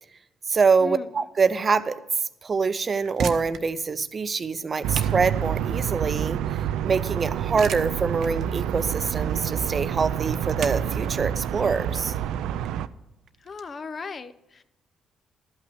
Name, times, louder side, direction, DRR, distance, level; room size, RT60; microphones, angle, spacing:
voice 1, 0.5-2.0 2.4-6.4 6.8-12.1, right 5 dB, 40° right, 13 dB, 0.6 m, -25 dB
sound 1, 2.9-13.6, right 6 dB, 70° right, 0.8 m, -38 dB
sound 2, 4.8-12.9, right 10 dB, 90° right, 0.4 m, -28 dB
voice 2, 13.4-14.6, left 4 dB, 40° left, 13 dB, 0.6 m, -36 dB
12.5 x 5.8 x 8.0 m, 0.92 s
cardioid pair, 90°, 0 cm